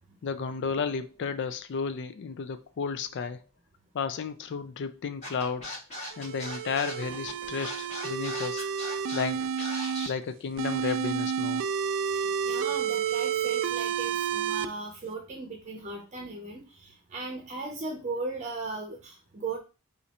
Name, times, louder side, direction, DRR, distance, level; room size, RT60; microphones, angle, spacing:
voice 1, 0.2-3.4 3.9-5.8 6.2-8.6 9.1-9.7 10.1-11.6, left 5 dB, 55° left, 0.3 m, -33 dB
Scratching (performance technique), 5.2-10.1, left 1 dB, 35° left, 2.1 m, -39 dB
sound 1, 6.1-10.1 10.6-14.7, right 7 dB, 60° right, 0.3 m, -30 dB
voice 2, 12.1-19.6, right 3 dB, 35° right, 0.7 m, -37 dB
4.1 x 2.5 x 4.1 m
head